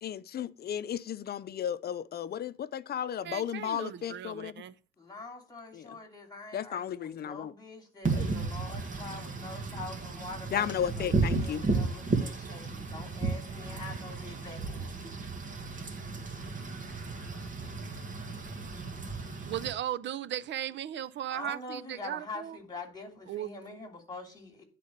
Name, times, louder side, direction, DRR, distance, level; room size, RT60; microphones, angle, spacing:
voice 1, 0.0-4.6 5.7-5.9 6.5-7.5 8.1-8.4 10.5-11.6, left 9 dB, 50° left, 0.6 m, -34 dB
voice 2, 3.2-4.7 19.5-22.6 23.3-23.5, right 11 dB, 65° right, 0.6 m, -36 dB
voice 3, 5.0-15.0 21.3-24.6, left 3 dB, 20° left, 3.0 m, -45 dB
Wind / Rain, 8.0-19.7, right 3 dB, 40° right, 2.0 m, -34 dB
10.0 x 4.2 x 6.5 m
cardioid pair, 90°, 20 cm